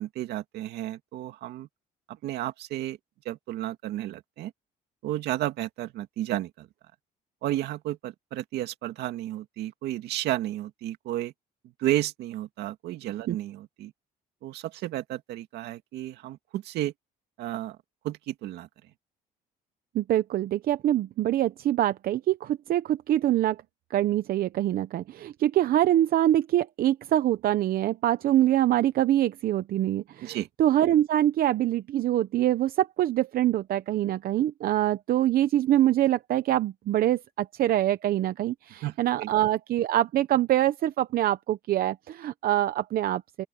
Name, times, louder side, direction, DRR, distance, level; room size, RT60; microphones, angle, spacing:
voice 1, 0.0-1.7 2.1-3.0 3.2-4.5 5.0-6.7 7.4-11.3 11.8-13.9 14.4-16.9 17.4-17.8 18.0-18.7 30.2-30.5 38.7-39.3, right 14 dB, 80° right, 2.2 m, -32 dB
voice 2, 19.9-23.6 23.9-43.4, right 12 dB, 60° right, 0.8 m, -24 dB
open air
cardioid pair, 110°, 17 cm